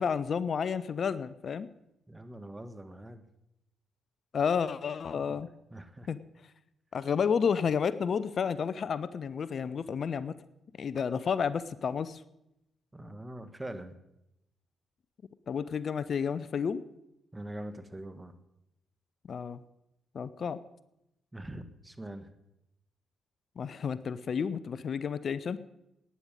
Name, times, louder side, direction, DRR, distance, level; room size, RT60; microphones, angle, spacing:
voice 1, 0.0-1.7 4.3-5.5 6.1-6.2 6.9-10.4 10.8-12.2 15.5-16.8 19.3-19.6 20.1-20.6 23.6-25.6, left 6 dB, 55° left, 16 dB, 0.6 m, -31 dB
voice 2, 2.1-3.2 5.1-5.4 5.7-6.1 12.9-13.9 17.3-18.3 21.3-22.3, right 1 dB, 15° right, 10 dB, 1.5 m, -43 dB
11.5 x 9.7 x 9.0 m, 0.88 s
supercardioid pair, 50°, 0 cm